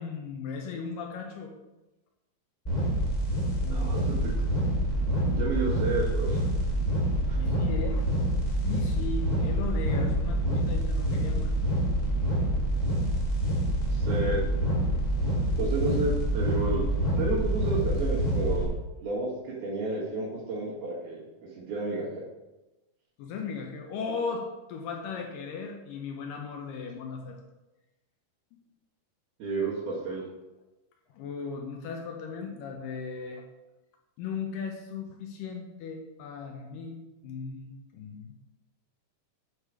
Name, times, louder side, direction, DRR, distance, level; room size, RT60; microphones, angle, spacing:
voice 1, 0.0-1.5 3.6-4.2 7.4-8.1 8.6-11.5 23.2-27.4 31.1-33.4 34.2-38.3, left 5 dB, 75° left, 2 dB, 2.2 m, -37 dB
sound 1, 2.6-18.6, right 1 dB, 15° left, 1.4 m, -27 dB
voice 2, 3.7-4.3 5.3-6.4 7.3-7.4 13.9-14.4 15.6-16.8 17.2-18.7 19.0-21.2 21.6-22.3 29.4-30.2, right 3 dB, 80° right, -10 dB, 3.7 m, -31 dB
8.1 x 4.9 x 4.8 m, 1.1 s
omnidirectional pair, 4.4 m